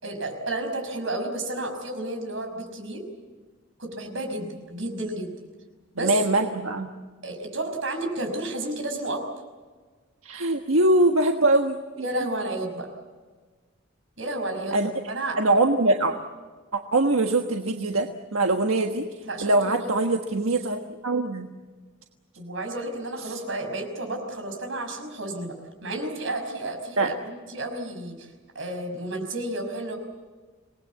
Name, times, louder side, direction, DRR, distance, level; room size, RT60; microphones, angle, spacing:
voice 1, 0.0-3.0 3.8-5.3 5.9-6.1 7.2-9.2 12.0-12.9 14.2-15.4 19.2-20.0 22.4-25.5 25.8-28.3 28.6-30.0, right 2 dB, 65° right, 4 dB, 5.6 m, -31 dB
voice 2, 6.0-6.9 10.2-11.8 14.7-14.9 15.4-16.1 16.7-19.1 19.4-21.5 27.0-27.1, right 2 dB, 90° right, 4 dB, 1.4 m, -22 dB
27.0 x 19.5 x 8.4 m, 1.4 s
head